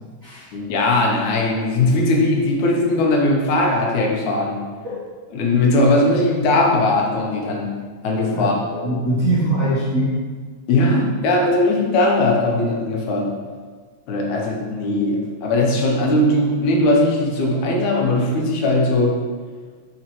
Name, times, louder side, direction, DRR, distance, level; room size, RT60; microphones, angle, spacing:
voice 1, 0.5-4.7 5.3-7.8 8.0-8.6 10.7-13.3 14.1-19.2, left 2 dB, 80° left, -1 dB, 2.3 m, -19 dB
voice 2, 8.7-10.1, right 1 dB, 40° right, -10 dB, 1.4 m, -22 dB
7.3 x 5.1 x 3.0 m, 1.5 s
omnidirectional pair, 3.4 m